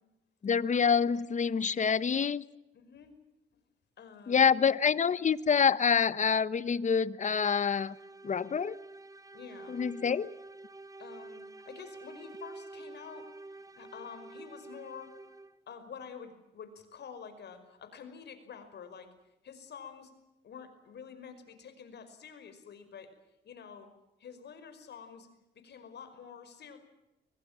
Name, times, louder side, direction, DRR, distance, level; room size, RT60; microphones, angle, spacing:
voice 1, 0.4-2.4 4.3-7.9 8.2-8.8 9.7-10.3, left 6 dB, 40° left, 1.1 m, -26 dB
voice 2, 2.7-3.2 3.5-3.6 4.0-4.7 9.3-9.8 11.0-15.2 15.7-19.1 19.4-20.1 20.4-23.1 23.4-23.9 24.2-25.3 25.5-26.8, left 6 dB, 60° left, 5.4 m, -48 dB
sound 1, 7.3-15.7, right 2 dB, 15° right, 1.3 m, -48 dB
23.5 x 23.0 x 7.5 m
cardioid pair, 90°, 20 cm